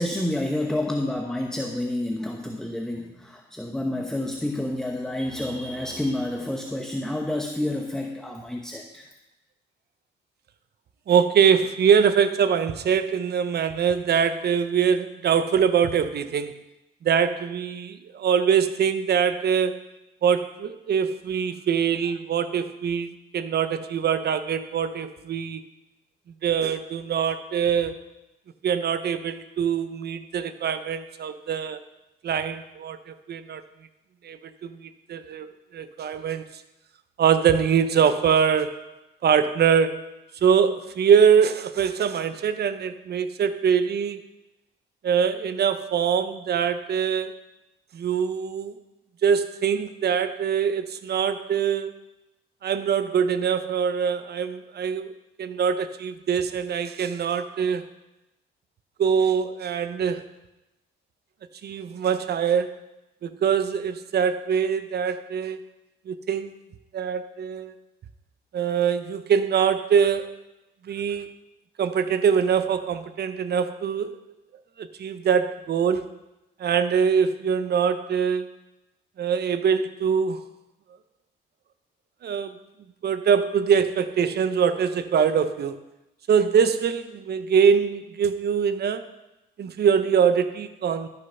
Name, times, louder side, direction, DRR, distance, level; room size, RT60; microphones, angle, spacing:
voice 1, 0.0-9.1, left 1 dB, 5° left, 2 dB, 0.9 m, -29 dB
voice 2, 11.1-16.6 17.0-19.8 20.2-25.6 26.4-28.0 28.6-31.8 32.2-33.6 34.2-36.5 37.2-38.9 39.2-40.1 40.4-44.2 45.0-47.3 47.9-48.8 49.2-51.9 52.6-55.1 55.4-57.9 59.0-60.3 61.6-62.8 63.2-65.6 66.1-66.5 66.9-67.7 68.5-70.4 70.8-71.3 71.8-74.2 74.8-76.1 76.6-78.5 79.2-80.4 82.2-82.5 83.0-85.8 86.3-89.1 89.6-91.1, right 7 dB, 55° right, 12 dB, 0.8 m, -23 dB
12.5 x 6.7 x 5.5 m, 0.96 s
cardioid pair, 90°, 20 cm